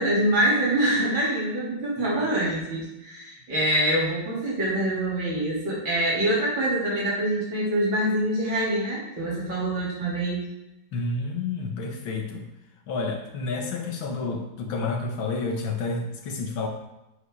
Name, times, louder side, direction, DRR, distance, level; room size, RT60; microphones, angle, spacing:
voice 1, 0.0-10.5, right 1 dB, 80° right, -7 dB, 4.1 m, -25 dB
voice 2, 10.9-12.4 12.9-16.7, left 3 dB, 85° left, 3 dB, 2.1 m, -30 dB
8.4 x 8.0 x 4.8 m, 0.93 s
omnidirectional pair, 2.1 m